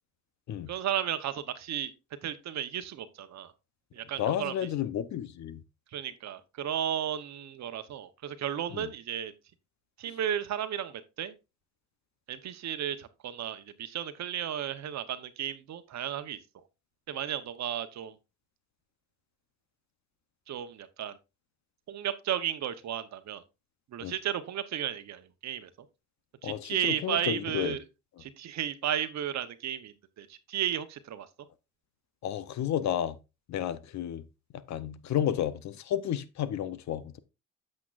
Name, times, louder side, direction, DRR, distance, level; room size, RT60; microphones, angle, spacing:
voice 1, 0.7-1.9 2.2-3.5 3.9-4.5 5.9-9.3 10.0-11.3 12.3-16.4 17.1-18.1 20.5-21.2 21.9-23.4 23.9-25.7 26.4-27.8 28.2-31.3, right 10 dB, 65° right, 0.9 m, -34 dB
voice 2, 4.2-5.6 8.7-8.9 24.0-24.1 26.4-27.8 32.2-33.2 33.5-34.2 34.7-37.2, left 10 dB, 65° left, 0.7 m, -32 dB
8.4 x 7.6 x 2.4 m
cardioid pair, 90°, 30 cm